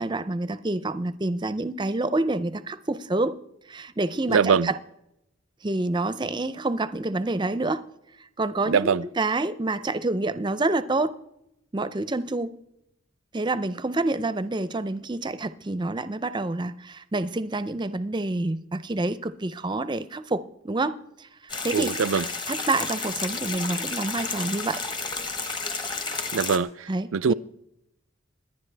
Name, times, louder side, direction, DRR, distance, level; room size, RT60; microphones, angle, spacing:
voice 1, 0.0-3.4 3.7-4.8 5.6-7.8 8.4-11.1 11.7-12.5 13.3-21.3 21.6-21.9 22.5-24.8 26.9-27.3, right 2 dB, 20° right, 0.5 m, -27 dB
voice 2, 4.3-4.7 8.7-9.0 21.7-22.2 26.3-27.3, right 6 dB, 75° right, 0.4 m, -23 dB
sound 1, 21.5-26.6, left 4 dB, 20° left, 1.1 m, -31 dB
27.5 x 10.5 x 3.4 m
head